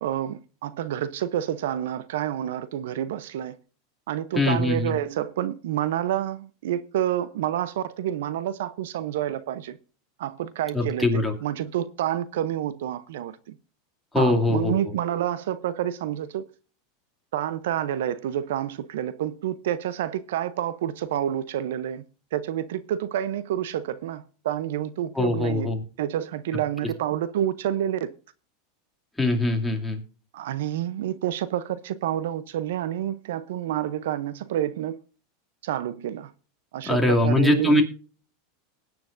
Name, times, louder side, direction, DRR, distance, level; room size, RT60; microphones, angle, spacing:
voice 1, 0.0-3.6 4.1-9.8 10.2-13.6 14.1-16.5 17.3-22.0 22.3-25.7 26.0-28.1 30.3-35.0 35.6-36.3 36.7-37.8, right 11 dB, 80° right, 0.7 m, -28 dB
voice 2, 4.4-4.9 10.7-11.3 14.1-14.8 25.1-25.8 29.2-30.0 36.9-37.8, left 2 dB, 5° left, 2.5 m, -22 dB
19.5 x 9.5 x 2.6 m
supercardioid pair, 120°, 0 cm